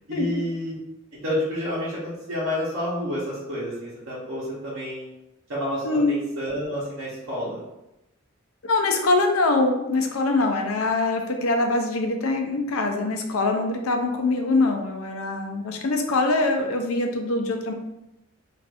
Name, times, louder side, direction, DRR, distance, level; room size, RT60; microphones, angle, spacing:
voice 1, 0.1-0.7 1.1-5.1 5.5-7.6, left 1 dB, 70° right, -9 dB, 0.8 m, -29 dB
voice 2, 5.8-6.2 8.6-17.7, left 2 dB, 85° left, 4 dB, 0.5 m, -23 dB
2.5 x 2.5 x 3.4 m, 0.91 s
head